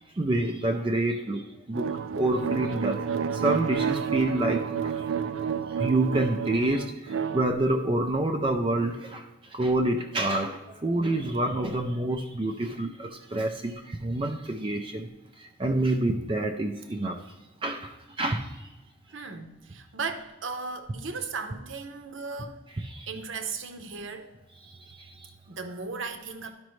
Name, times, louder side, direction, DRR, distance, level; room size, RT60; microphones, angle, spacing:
voice 1, 0.2-1.9 2.1-3.0 3.3-5.0 5.8-15.1 15.4-17.2 17.6-18.5 22.8-23.1 25.0-25.3, right 1 dB, 25° right, 4 dB, 0.4 m, -28 dB
sound 1, 1.7-7.4, right 7 dB, 90° right, 0.4 m, -30 dB
voice 2, 19.1-22.7 23.1-24.4 25.5-26.5, right 4 dB, 75° right, 6 dB, 0.8 m, -36 dB
12.0 x 5.2 x 3.1 m, 1.1 s
head